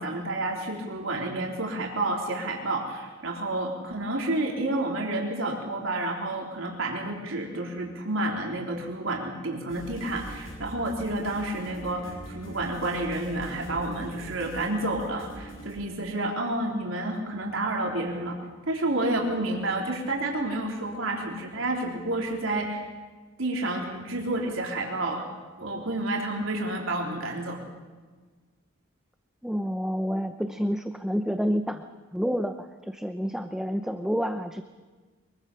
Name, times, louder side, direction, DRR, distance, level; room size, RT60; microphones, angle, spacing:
voice 1, 0.0-18.4 18.7-22.9 23.4-25.2 25.6-27.6, right 2 dB, 85° right, 0 dB, 3.8 m, -30 dB
sound 1, 9.7-15.8, right 1 dB, 85° left, 7.7 m, -43 dB
voice 2, 29.4-31.8 32.1-34.6, equal, 5° right, 7 dB, 0.8 m, -29 dB
24.0 x 22.5 x 6.9 m, 1.4 s
head